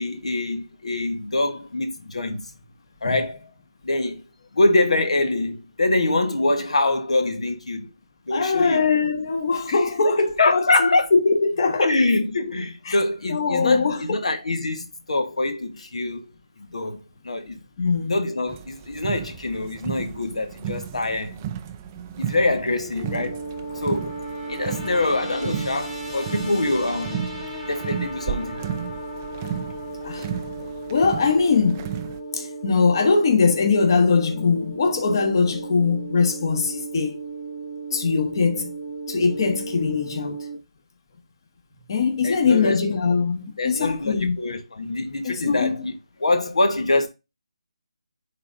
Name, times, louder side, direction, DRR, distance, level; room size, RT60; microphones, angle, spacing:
voice 1, 0.0-2.5 3.0-3.5 3.8-4.2 4.5-7.9 8.3-8.8 9.7-9.8 10.4-11.1 11.8-16.2 16.7-17.6 18.1-21.4 22.2-23.4 23.7-24.2 24.5-27.2 27.7-28.6 42.2-42.8 43.6-45.9 46.2-47.1, left 2 dB, 75° left, 1.2 m, -24 dB
voice 2, 8.3-10.9 11.2-11.9 12.9-13.0 13.3-14.0 17.8-18.2 30.0-30.3 30.9-31.9 32.3-37.2 37.9-38.7 39.1-40.5 41.9-44.4 45.2-45.8, left 4 dB, 40° left, 1.3 m, -21 dB
sound 1, 18.5-32.2, right 9 dB, 15° right, 0.3 m, -34 dB
sound 2, 22.9-40.6, right 2 dB, 10° left, 1.1 m, -35 dB
10.5 x 3.8 x 2.6 m
figure-of-eight pair, 165°, 3 cm